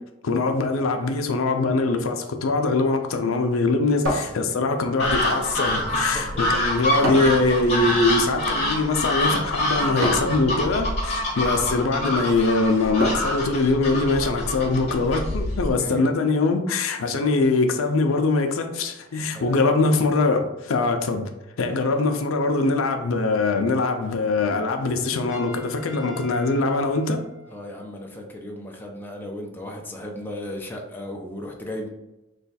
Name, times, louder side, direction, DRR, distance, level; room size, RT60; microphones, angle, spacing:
voice 1, 0.2-21.3 21.6-27.2, left 3 dB, 75° left, 0.5 m, -22 dB
voice 2, 4.1-4.7 5.2-6.3 9.8-9.9 15.8-16.0 19.1-19.6 21.7-22.3 27.5-31.9, left 1 dB, 10° left, 0.4 m, -37 dB
sound 1, 4.1-4.9 7.0-7.5 10.0-10.4 13.0-13.4, equal, 65° right, 1.2 m, -27 dB
sound 2, 5.0-15.7, left 1 dB, 35° left, 1.0 m, -26 dB
Trumpet, 25.3-28.0, equal, 20° right, 0.9 m, -45 dB
3.2 x 2.3 x 4.0 m
head